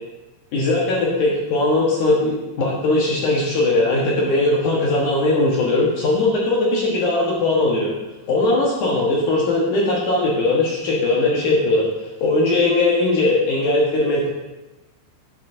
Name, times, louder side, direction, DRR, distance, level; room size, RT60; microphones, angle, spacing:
voice 1, 0.5-7.9 8.3-11.9 12.2-14.3, left 2 dB, 65° left, -4 dB, 2.1 m, -19 dB
11.0 x 7.9 x 2.7 m, 1.1 s
omnidirectional pair, 5.1 m